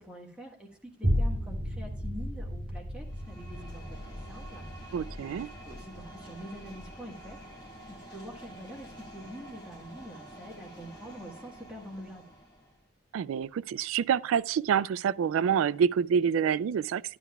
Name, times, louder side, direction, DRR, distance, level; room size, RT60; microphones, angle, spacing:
voice 1, 0.0-3.8 4.3-7.4 7.9-12.4, equal, 5° right, 1.4 m, -46 dB
sound 1, 1.0-9.6 10.1-10.2, equal, 45° right, 2.6 m, -35 dB
sound 2, 3.0-12.8, right 1 dB, 20° left, 2.0 m, -49 dB
voice 2, 4.9-5.5 13.1-17.0, right 7 dB, 90° right, 0.3 m, -27 dB
12.0 x 10.0 x 2.3 m
head